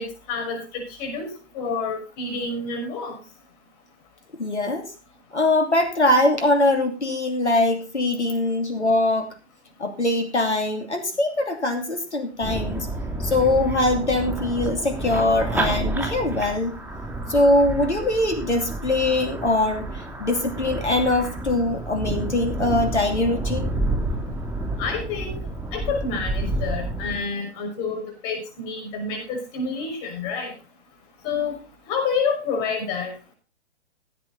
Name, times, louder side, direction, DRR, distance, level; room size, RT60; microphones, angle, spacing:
voice 1, 0.0-3.2 24.8-25.4 25.7-30.5 31.2-31.6 31.9-33.1, left 4 dB, 35° left, 4 dB, 5.8 m, -28 dB
voice 2, 4.4-4.9 5.3-9.3 9.8-12.9 13.2-16.7 17.3-23.7, left 2 dB, 85° left, 5 dB, 2.9 m, -22 dB
sound 1, 12.4-27.2, right 1 dB, 5° right, 2.4 m, -29 dB
15.5 x 9.2 x 3.9 m, 0.33 s
figure-of-eight pair, 120°, 34 cm